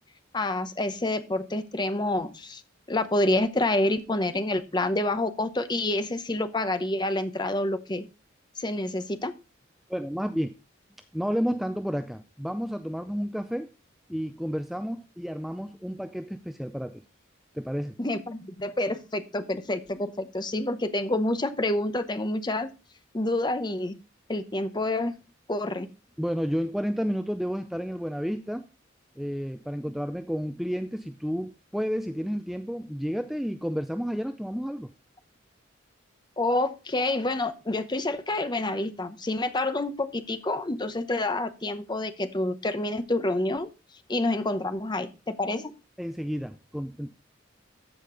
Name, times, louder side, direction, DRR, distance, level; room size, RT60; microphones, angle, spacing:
voice 1, 0.3-2.6 2.9-8.1 8.6-9.3 18.0-22.7 23.1-24.0 24.3-25.1 25.5-25.9 36.4-43.7 44.1-45.7, left 2 dB, 20° left, 10 dB, 0.8 m, -28 dB
voice 2, 9.9-10.5 11.1-13.7 14.1-17.0 17.5-17.9 26.2-28.6 29.2-34.9 46.0-47.1, equal, ahead, 8 dB, 0.4 m, -31 dB
14.0 x 5.2 x 3.8 m, 0.31 s
head